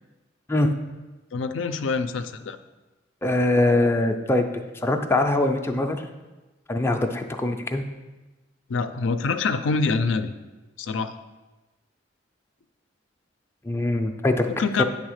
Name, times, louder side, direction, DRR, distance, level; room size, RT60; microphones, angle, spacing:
voice 1, 1.3-2.6 8.7-10.3 10.8-11.1 14.5-14.8, left 4 dB, 75° left, 10 dB, 0.5 m, -25 dB
voice 2, 3.2-4.4 4.8-6.1 6.7-7.8 13.6-14.5, left 2 dB, 15° left, 4 dB, 0.4 m, -22 dB
8.8 x 3.4 x 6.4 m, 1.2 s
head